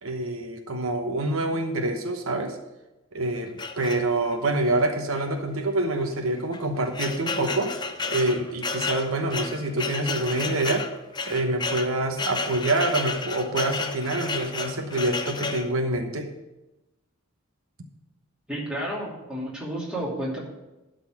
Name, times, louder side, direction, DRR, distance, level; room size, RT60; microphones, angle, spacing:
voice 1, 0.0-2.6 3.1-7.7 8.1-10.8 11.3-16.3, right 2 dB, 80° right, 5 dB, 1.0 m, -26 dB
sound 1, 3.6-4.4 5.2-5.3 5.6-5.7 6.4-15.7, left 4 dB, 20° left, 0.5 m, -32 dB
voice 2, 18.5-20.4, right 1 dB, 5° right, -6 dB, 2.7 m, -31 dB
12.0 x 4.1 x 7.4 m, 0.99 s
head